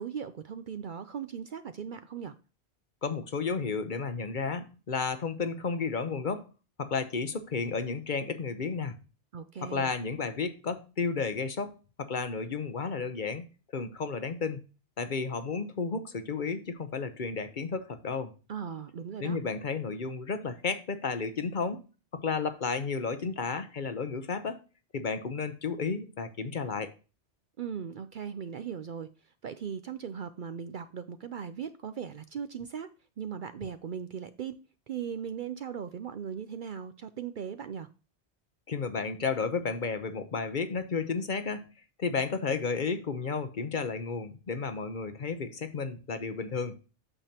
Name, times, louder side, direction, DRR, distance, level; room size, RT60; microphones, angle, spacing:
voice 1, 0.0-2.3 9.3-9.9 18.5-19.4 27.6-32.9 33.2-34.6 34.9-37.9, right 7 dB, 55° right, 0.6 m, -38 dB
voice 2, 3.0-6.5 6.8-9.0 9.6-13.5 13.7-14.6 15.0-18.3 19.2-21.8 22.1-24.6 24.9-26.9 38.7-41.7 42.0-46.8, left 5 dB, 50° left, 0.9 m, -32 dB
8.8 x 6.8 x 2.8 m
omnidirectional pair, 1.2 m